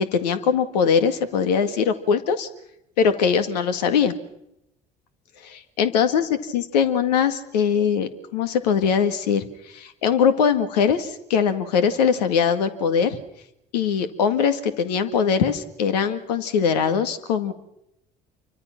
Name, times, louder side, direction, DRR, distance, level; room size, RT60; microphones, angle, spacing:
voice 1, 0.0-2.5 3.0-4.1 5.4-13.2 13.7-17.5, left 7 dB, 80° left, 9 dB, 2.1 m, -21 dB
28.5 x 24.5 x 6.0 m, 0.82 s
hypercardioid pair, 55°, 21 cm